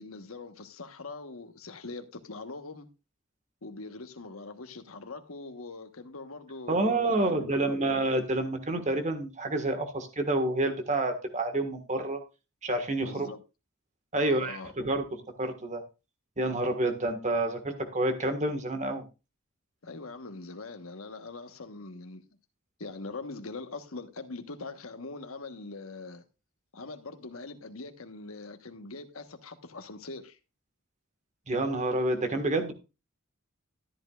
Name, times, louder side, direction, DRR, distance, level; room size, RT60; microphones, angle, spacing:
voice 1, 0.0-2.9 3.6-7.8 13.0-13.4 14.2-14.7 19.8-22.2 22.8-26.2 26.7-30.4, left 3 dB, 80° left, 1.2 m, -42 dB
voice 2, 6.7-12.2 12.6-13.3 14.1-15.0 15.4-15.8 16.4-19.0 31.5-32.7, right 2 dB, 35° right, 1.6 m, -28 dB
13.5 x 10.5 x 2.4 m
head